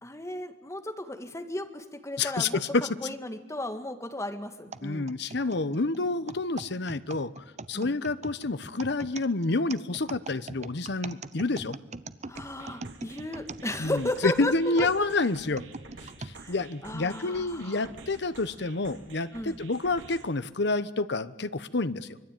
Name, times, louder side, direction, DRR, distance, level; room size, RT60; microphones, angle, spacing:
voice 1, 0.0-2.6 3.0-5.1 7.7-8.0 12.3-14.9 16.4-16.5 16.8-17.9 19.3-19.6, left 1 dB, 15° left, 7 dB, 1.9 m, -35 dB
voice 2, 2.2-2.9 4.8-11.8 13.8-15.6 16.2-22.1, left 3 dB, 65° left, 13 dB, 1.0 m, -29 dB
sound 1, 4.7-14.2 14.8-16.4 17.0-17.1 17.9-18.2, right 3 dB, 40° right, 0.8 m, -42 dB
sound 2, 12.3-20.3, right 3 dB, 75° right, 3.5 m, -49 dB
25.0 x 22.0 x 9.2 m, 1.1 s
head